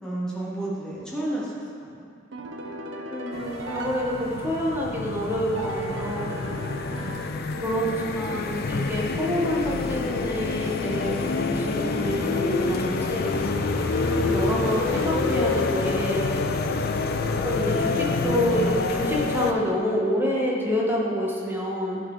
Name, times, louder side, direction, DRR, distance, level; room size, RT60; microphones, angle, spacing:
voice 1, 0.0-1.5 1.8-2.1 7.0-7.5, right 1 dB, 5° left, -8 dB, 1.7 m, -32 dB
sound 1, 2.3-4.9 5.6-8.0, right 2 dB, 70° right, 0.7 m, -37 dB
voice 2, 3.1-6.3 7.6-13.3 14.2-16.3 17.4-22.0, equal, 10° right, -4 dB, 1.1 m, -27 dB
sound 2, 3.3-19.5, left 3 dB, 55° left, 0.4 m, -27 dB
sound 3, 13.2-17.5, left 1 dB, 75° left, 1.4 m, -34 dB
11.5 x 4.0 x 3.7 m, 2.4 s
head